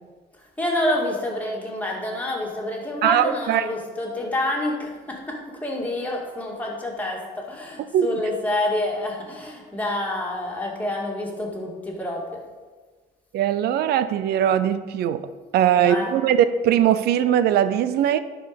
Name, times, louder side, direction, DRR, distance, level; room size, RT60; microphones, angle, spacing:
voice 1, 0.6-12.4 15.8-16.1, left 1 dB, 10° left, -2 dB, 2.2 m, -28 dB
voice 2, 3.0-3.7 7.9-8.2 13.3-15.3 15.5-18.2, right 10 dB, 70° right, 13 dB, 0.5 m, -20 dB
11.0 x 4.7 x 5.2 m, 1.3 s
cardioid pair, 110°, 17 cm